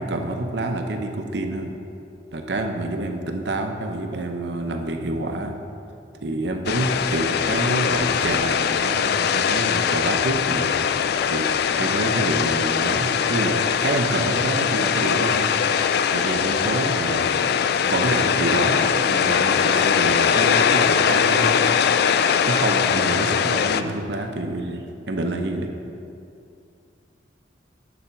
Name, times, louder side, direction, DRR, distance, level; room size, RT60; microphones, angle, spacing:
voice 1, 0.0-1.7 2.3-5.5 6.2-10.7 11.3-15.6 16.1-17.3 17.8-21.8 22.5-25.7, right 2 dB, 65° right, 5 dB, 0.8 m, -27 dB
sound 1, 6.7-23.8, left 7 dB, 60° left, 0.3 m, -21 dB
11.0 x 4.2 x 5.9 m, 2.6 s
head